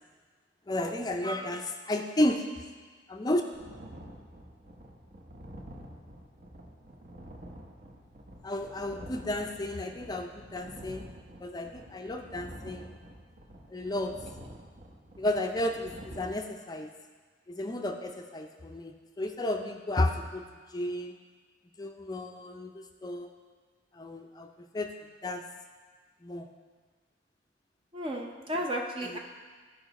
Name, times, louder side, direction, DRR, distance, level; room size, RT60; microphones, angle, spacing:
voice 1, 0.7-2.5 3.1-3.4 8.4-11.1 11.4-12.9 13.7-14.1 15.2-16.9 17.5-20.5 20.7-21.2 21.8-23.3 23.9-24.9 25.2-25.4 26.2-26.5, left 1 dB, 20° left, 4 dB, 0.5 m, -32 dB
sound 1, 3.5-16.3, right 1 dB, 45° right, 1.1 m, -48 dB
voice 2, 27.9-29.2, equal, 30° right, 1 dB, 0.7 m, -33 dB
13.5 x 4.9 x 4.1 m, 1.5 s
head